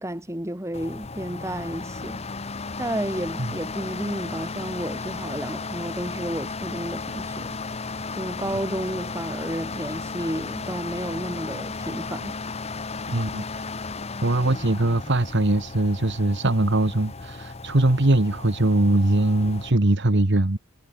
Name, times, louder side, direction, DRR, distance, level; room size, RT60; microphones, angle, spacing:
voice 1, 0.0-2.2 2.8-7.8 8.1-12.3, right 1 dB, 15° right, 3.5 m, -32 dB
sound 1, 0.7-19.7, left 3 dB, 30° left, 1.1 m, -34 dB
voice 2, 13.1-13.6 14.2-20.6, right 1 dB, 55° right, 1.6 m, -21 dB
head